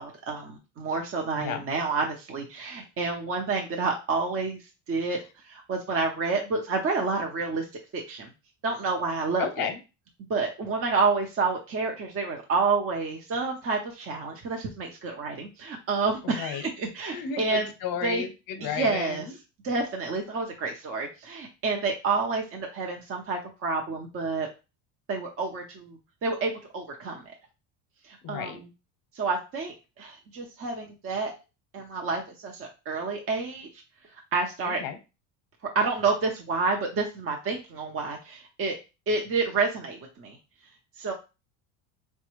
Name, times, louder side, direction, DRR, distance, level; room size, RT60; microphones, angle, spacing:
voice 1, 0.0-4.6 4.9-5.2 5.4-7.7 7.9-8.3 8.6-9.7 10.3-17.6 18.0-18.2 18.6-19.2 19.6-24.5 25.1-27.3 28.0-28.6 29.1-31.3 31.7-33.7 34.3-34.8 35.7-38.8 39.1-40.4 41.0-41.1, right 4 dB, 35° right, 1 dB, 0.7 m, -29 dB
voice 2, 9.4-9.8 16.2-16.7 17.1-19.4 28.2-28.6 34.6-35.0, left 8 dB, 60° left, 8 dB, 0.7 m, -33 dB
4.0 x 2.2 x 3.0 m, 0.29 s
supercardioid pair, 105°, 39 cm